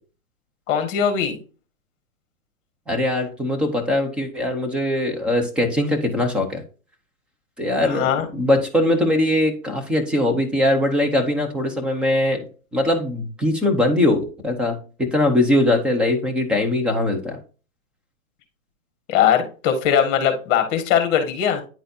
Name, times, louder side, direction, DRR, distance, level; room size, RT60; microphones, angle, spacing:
voice 1, 0.7-1.4 7.8-8.2 19.1-21.6, left 8 dB, 25° left, 1.7 m, -20 dB
voice 2, 2.9-6.6 7.6-12.5 12.7-17.4, left 1 dB, 5° right, 0.5 m, -21 dB
10.0 x 4.0 x 2.6 m
hypercardioid pair, 150°, 42 cm